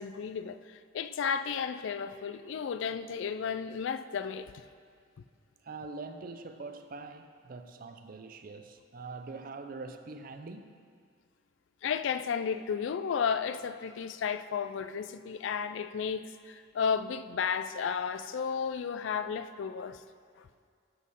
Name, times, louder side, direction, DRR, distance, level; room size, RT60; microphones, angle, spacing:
voice 1, 0.0-4.5 11.8-20.0 20.4-20.5, left 6 dB, 70° left, 0.3 m, -33 dB
voice 2, 5.6-10.8, right 3 dB, 45° right, 0.4 m, -44 dB
12.0 x 4.2 x 5.5 m
head